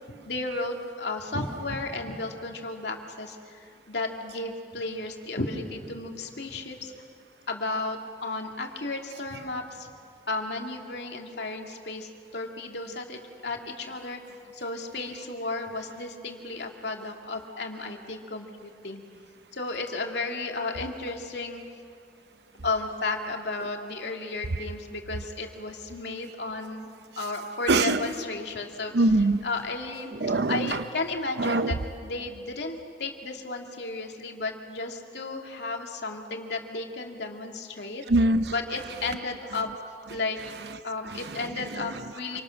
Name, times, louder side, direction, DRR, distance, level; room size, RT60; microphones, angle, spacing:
voice 1, 0.2-6.9 7.5-9.9 10.3-14.2 14.5-19.0 19.5-21.6 22.6-26.9 27.2-29.1 29.4-31.7 32.0-38.0 38.5-39.7 40.1-40.4 40.8-42.4, left 3 dB, 80° left, 2 dB, 2.4 m, -33 dB
voice 2, 27.7-28.2 28.9-29.4 30.1-30.9 31.3-31.8 38.1-39.2 39.5-39.7 40.1-42.4, right 2 dB, 75° right, 11 dB, 0.8 m, -26 dB
27.5 x 26.0 x 6.5 m, 2.4 s
head